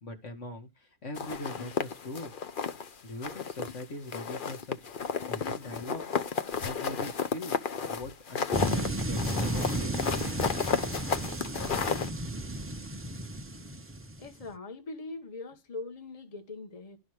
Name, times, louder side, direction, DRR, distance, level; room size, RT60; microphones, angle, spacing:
voice 1, 0.0-2.3 3.0-6.0 6.6-10.1, left 1 dB, 70° left, 2.4 m, -42 dB
sound 1, 1.2-2.9 3.2-3.8 4.1-12.1, left 6 dB, 50° left, 0.9 m, -32 dB
sound 2, 8.5-14.4, right 1 dB, 20° right, 0.3 m, -33 dB
voice 2, 14.2-17.0, left 3 dB, 30° left, 1.3 m, -41 dB
12.0 x 5.6 x 4.9 m
omnidirectional pair, 1.3 m